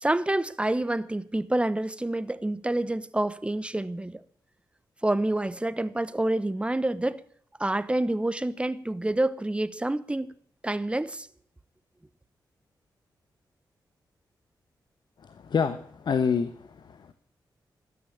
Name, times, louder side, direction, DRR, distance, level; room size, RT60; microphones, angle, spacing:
voice 1, 0.0-4.2 5.0-7.2 7.6-10.3 10.6-11.3, right 1 dB, 15° right, 1.0 m, -27 dB
voice 2, 15.2-17.1, left 6 dB, 65° left, 1.1 m, -28 dB
13.0 x 9.8 x 8.7 m
cardioid pair, 65°, 8 cm